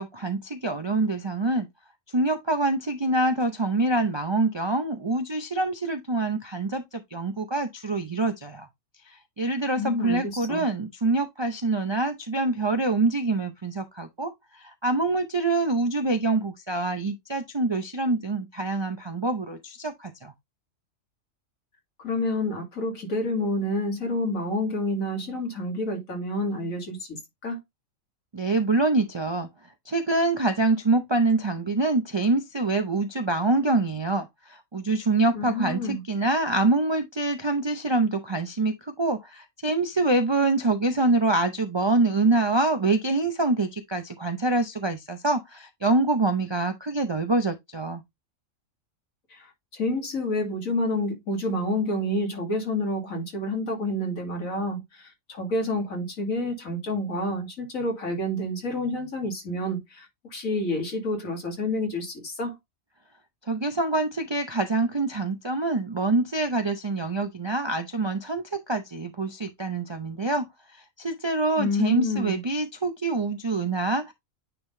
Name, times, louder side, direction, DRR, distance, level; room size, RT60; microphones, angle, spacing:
voice 1, 0.0-1.7 2.1-8.7 9.1-20.3 28.3-29.5 29.9-48.0 63.5-70.5 71.0-74.1, right 2 dB, 45° right, 0.3 m, -25 dB
voice 2, 9.8-10.7 22.0-27.6 35.3-36.0 49.3-62.6 71.6-72.4, left 1 dB, 85° left, 2.6 m, -29 dB
9.3 x 3.8 x 2.6 m
omnidirectional pair, 1.4 m